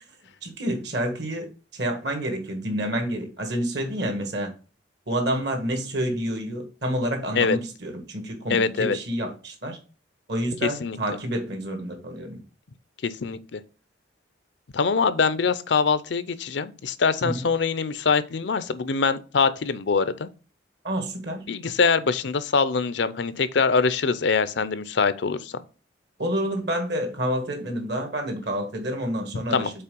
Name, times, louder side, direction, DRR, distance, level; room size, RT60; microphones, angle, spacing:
voice 1, 0.4-4.5 5.1-9.8 10.3-12.4 17.2-17.5 20.8-21.5 26.2-29.7, right 1 dB, 60° right, 1.7 m, -28 dB
voice 2, 8.5-9.0 10.6-11.0 13.0-13.6 14.7-20.3 21.5-25.5 29.5-29.7, left 5 dB, 65° left, 0.5 m, -23 dB
5.6 x 4.2 x 5.2 m
head